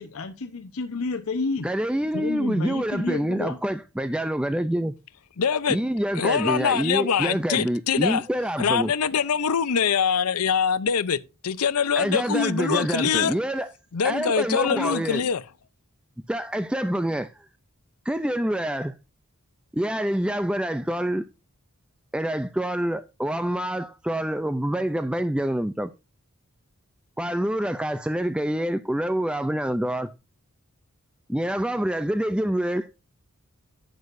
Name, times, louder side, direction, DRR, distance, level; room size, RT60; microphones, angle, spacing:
voice 1, 0.0-1.7 2.1-3.6, left 3 dB, 70° left, 0.9 m, -30 dB
voice 2, 1.6-4.9 5.7-8.9 12.0-13.7 14.0-15.2 16.3-17.5 18.0-18.9 19.7-21.3 22.1-25.9 27.2-30.1 31.3-32.9, right 1 dB, 5° right, 0.4 m, -26 dB
voice 3, 5.4-5.8 6.2-8.2 8.6-11.2 11.4-13.4 13.9-15.4, left 6 dB, 90° left, 0.6 m, -23 dB
11.0 x 8.5 x 2.6 m
head